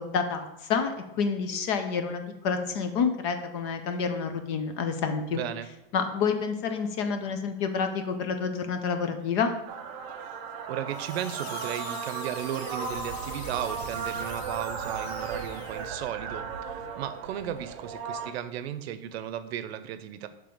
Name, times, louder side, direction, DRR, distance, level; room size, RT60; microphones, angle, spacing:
voice 1, 0.0-5.4 5.9-9.5, left 5 dB, 30° left, 7 dB, 0.4 m, -28 dB
voice 2, 5.3-5.7 10.7-20.3, right 10 dB, 90° right, 11 dB, 0.6 m, -35 dB
sound 1, 9.7-18.3, right 6 dB, 35° right, 0.5 m, -36 dB
sound 2, 10.9-16.1, left 6 dB, 90° left, 0.9 m, -45 dB
6.8 x 3.4 x 5.0 m, 0.90 s
supercardioid pair, 175°, 31 cm